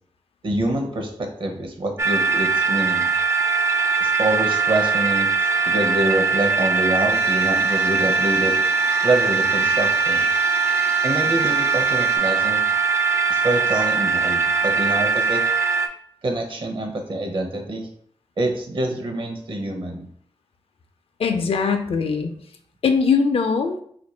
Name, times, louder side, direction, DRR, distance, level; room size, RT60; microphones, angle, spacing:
voice 1, 0.4-3.1 4.0-5.3 5.6-8.5 9.0-10.2 11.0-12.7 13.3-15.4 16.2-17.9 18.4-20.1, right 1 dB, 55° right, 3 dB, 0.7 m, -25 dB
sound 1, 2.0-15.9, right 5 dB, 25° right, 0.4 m, -21 dB
sound 2, 7.1-12.2, right 2 dB, 85° right, 0.8 m, -39 dB
voice 2, 21.2-22.3 22.8-23.8, left 5 dB, 65° left, 6 dB, 0.5 m, -21 dB
2.6 x 2.5 x 4.2 m, 0.63 s
wide cardioid pair, 95°, 10 cm